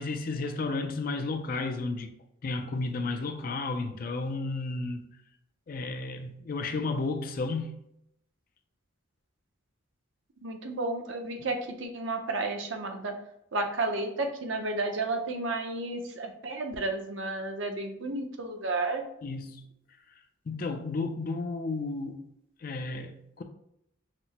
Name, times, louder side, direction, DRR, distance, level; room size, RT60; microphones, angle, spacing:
voice 1, 0.0-2.1 2.4-5.1 5.7-7.8 19.2-19.6 20.5-22.2 22.6-23.4, left 3 dB, 45° left, 0.4 m, -32 dB
voice 2, 10.4-13.2 13.5-19.0, right 2 dB, 65° right, 0.7 m, -32 dB
5.9 x 2.1 x 2.8 m
head